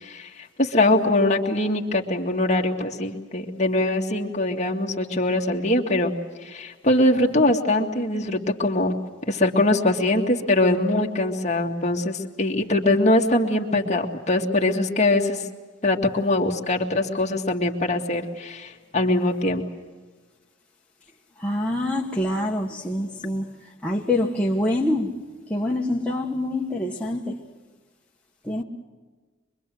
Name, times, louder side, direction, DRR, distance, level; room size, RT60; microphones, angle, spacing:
voice 1, 0.0-6.1 6.4-9.0 9.3-15.4 15.8-19.6, left 2 dB, 35° left, 1 dB, 2.1 m, -22 dB
voice 2, 21.4-23.5 23.8-25.1 25.5-27.4 28.4-28.6, left 1 dB, 5° left, -3 dB, 1.5 m, -25 dB
24.0 x 24.0 x 7.8 m, 1.3 s
head